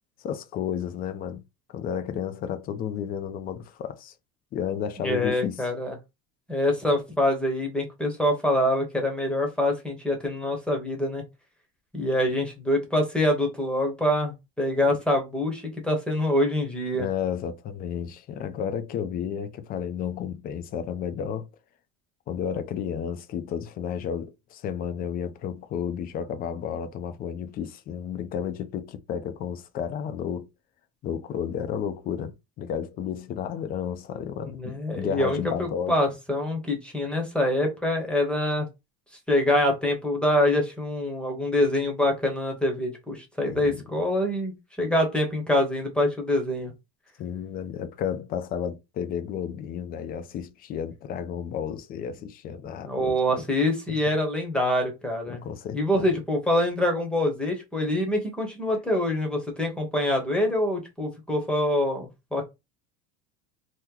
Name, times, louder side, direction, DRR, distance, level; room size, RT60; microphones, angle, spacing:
voice 1, 0.2-1.4 1.7-4.1 4.5-5.6 16.9-21.5 22.3-30.5 31.0-36.0 43.4-43.8 47.2-53.1 53.9-54.0 55.3-56.1, left 8 dB, 30° left, 0.4 m, -32 dB
voice 2, 5.0-5.9 6.5-11.2 11.9-17.1 34.4-38.7 39.3-46.7 52.8-55.4 55.7-62.5, left 1 dB, 5° left, 0.9 m, -25 dB
3.0 x 2.1 x 3.7 m
supercardioid pair, 145°, 30 cm